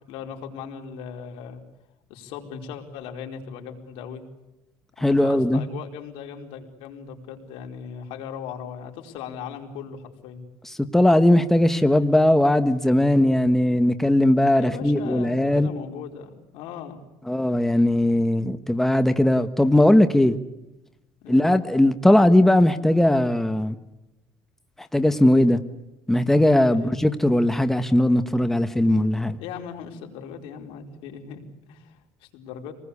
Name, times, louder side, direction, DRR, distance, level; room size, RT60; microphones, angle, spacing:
voice 1, 0.1-1.6 2.1-4.2 5.1-10.4 14.5-17.0 21.2-21.5 26.7-27.0 29.4-31.4 31.7-32.7, left 7 dB, 80° left, 2 dB, 4.7 m, -38 dB
voice 2, 5.0-5.6 10.6-15.7 17.3-20.4 21.3-23.8 24.9-25.6 26.1-29.4, left 1 dB, 5° left, 8 dB, 1.3 m, -19 dB
27.5 x 20.0 x 8.4 m, 0.98 s
cardioid pair, 125°, 9 cm